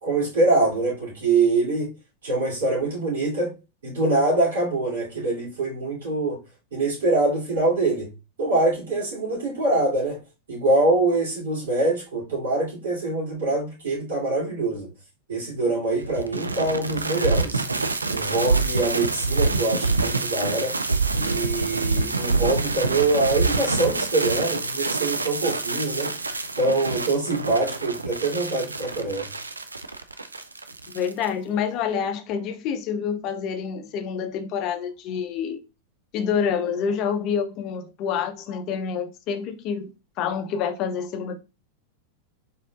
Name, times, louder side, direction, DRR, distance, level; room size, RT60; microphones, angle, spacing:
voice 1, 0.0-1.9 2.2-3.5 3.8-6.4 6.7-8.1 8.4-10.2 10.5-14.9 15.3-17.6 18.1-20.8 21.2-26.1 26.6-29.3, right 2 dB, 65° right, 2.7 m, -24 dB
sound 1, 16.0-31.3, right 3 dB, 80° right, 0.4 m, -26 dB
voice 2, 30.9-35.6 36.1-39.9 40.2-41.4, left 7 dB, 40° left, 0.5 m, -27 dB
4.2 x 4.0 x 2.3 m
figure-of-eight pair, 90°, 0 cm